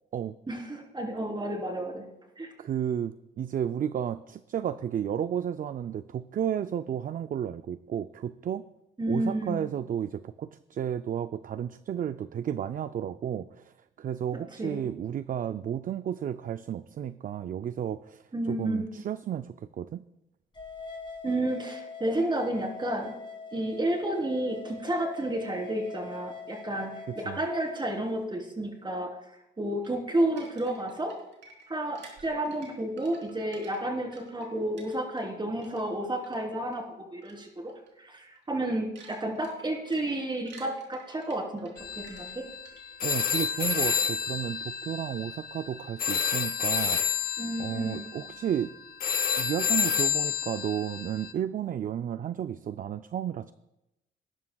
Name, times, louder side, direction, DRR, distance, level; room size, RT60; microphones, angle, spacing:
voice 1, 0.5-2.0 2.4-2.5 9.0-9.6 14.6-14.8 18.3-19.0 21.2-23.1 23.5-29.1 29.6-31.1 31.7-37.7 38.0-42.4 47.4-48.1, right 1 dB, 25° right, 0 dB, 3.6 m, -31 dB
voice 2, 2.6-8.6 9.1-20.0 27.1-27.4 43.0-47.2 47.6-48.7 49.4-53.5, right 9 dB, 45° right, 12 dB, 0.4 m, -32 dB
sound 1, 20.5-28.2, left 4 dB, 25° left, 2.5 m, -43 dB
sound 2, 29.8-35.3 35.6-36.8 37.2-37.4 37.7-37.9 38.3-43.1, right 4 dB, 65° right, 3.9 m, -53 dB
sound 3, 41.8-51.3, left 7 dB, 50° left, 0.7 m, -30 dB
19.5 x 11.0 x 2.3 m, 0.90 s
cardioid pair, 90°, 20 cm